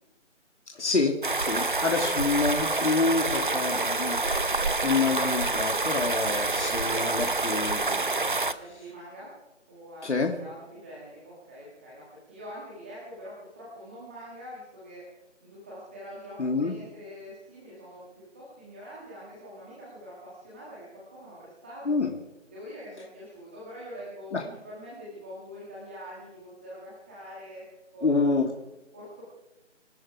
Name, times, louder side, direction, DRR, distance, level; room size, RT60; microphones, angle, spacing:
voice 1, 0.7-8.0 10.0-10.4 16.4-16.7 21.9-22.1 24.3-24.4 28.0-28.5, left 4 dB, 65° left, 3 dB, 2.3 m, -27 dB
sound 1, 1.2-8.5, right 3 dB, 40° right, 0.8 m, -27 dB
voice 2, 1.6-2.2 8.5-9.3 9.7-15.0 15.4-22.0 22.5-27.6 27.9-28.6 28.9-29.2, equal, 10° right, -7 dB, 1.8 m, -44 dB
25.0 x 12.0 x 4.8 m, 0.98 s
figure-of-eight pair, 170°, 37 cm